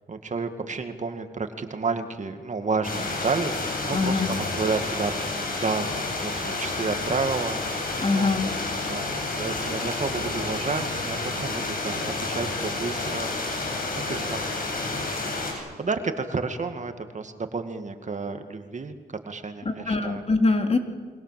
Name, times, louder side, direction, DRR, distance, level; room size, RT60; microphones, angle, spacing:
voice 1, 0.1-5.2 5.5-13.6 13.9-14.7 15.5-19.0 19.2-20.2, right 4 dB, 45° right, 7 dB, 2.1 m, -31 dB
sound 1, 2.8-15.5, left 3 dB, 55° left, 7.7 m, -30 dB
voice 2, 3.9-4.4 8.0-8.5 19.6-20.8, left 3 dB, 35° left, 5 dB, 3.4 m, -23 dB
28.0 x 24.0 x 7.7 m, 1.5 s
cardioid pair, 75°, 17 cm